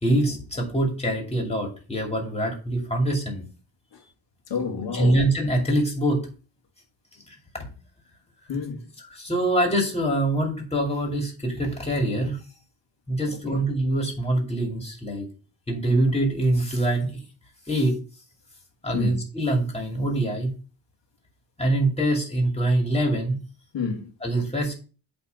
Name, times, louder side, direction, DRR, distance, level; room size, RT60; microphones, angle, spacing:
voice 1, 0.0-3.4 4.9-6.2 7.6-7.7 9.2-12.4 13.1-15.2 15.7-17.2 17.7-17.9 18.8-20.5 21.6-23.4 24.2-24.7, right 1 dB, 15° left, 2.5 m, -24 dB
voice 2, 4.5-5.2 8.5-8.8 13.3-13.6 18.9-19.1 23.7-24.1, left 5 dB, 85° left, 2.0 m, -29 dB
8.5 x 3.6 x 5.2 m
wide cardioid pair, 125°, 42 cm